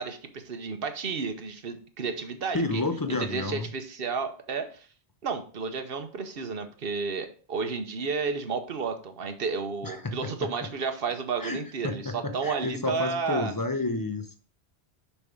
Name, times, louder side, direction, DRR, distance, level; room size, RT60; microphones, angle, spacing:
voice 1, 0.0-2.8 3.1-4.9 5.2-13.5, right 5 dB, 60° right, 7 dB, 1.1 m, -32 dB
voice 2, 2.5-3.7 9.8-10.7 11.4-14.4, left 2 dB, 20° left, 6 dB, 0.7 m, -31 dB
7.0 x 5.5 x 3.7 m, 0.40 s
omnidirectional pair, 1.1 m